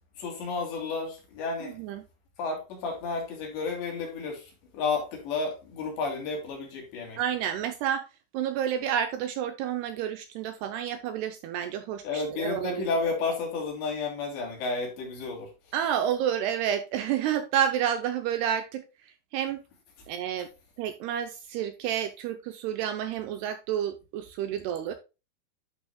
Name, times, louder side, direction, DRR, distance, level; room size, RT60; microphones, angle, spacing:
voice 1, 0.2-1.8 2.4-7.2 12.0-15.5, left 4 dB, 70° left, 4.9 m, -32 dB
voice 2, 1.6-2.0 7.2-8.1 8.3-12.8 15.7-18.8 19.3-19.6 20.1-20.5 20.8-24.9, right 9 dB, 80° right, 2.4 m, -30 dB
11.0 x 6.3 x 2.2 m
omnidirectional pair, 5.2 m